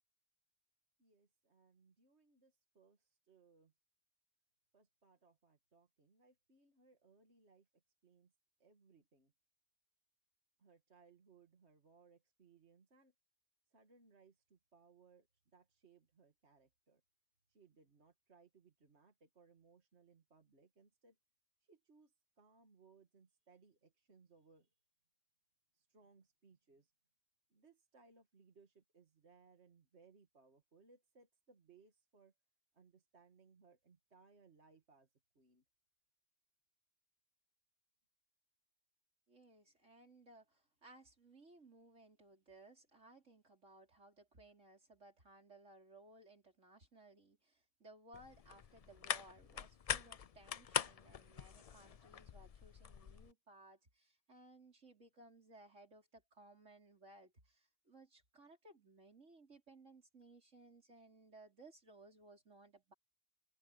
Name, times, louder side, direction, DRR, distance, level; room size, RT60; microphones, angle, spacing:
voice 1, 1.0-3.7 4.7-8.3 8.6-9.3 10.6-13.1 13.7-15.3 15.5-17.0 17.5-21.2 21.6-24.7 25.7-26.9 27.5-32.3 32.7-35.1 35.3-35.6, right 4 dB, 65° right, 2.3 m, -68 dB
voice 2, 39.3-62.9, right 2 dB, 85° right, 5.1 m, -61 dB
sound 1, 48.1-53.3, left 7 dB, 50° left, 0.4 m, -43 dB
omnidirectional pair, 1.2 m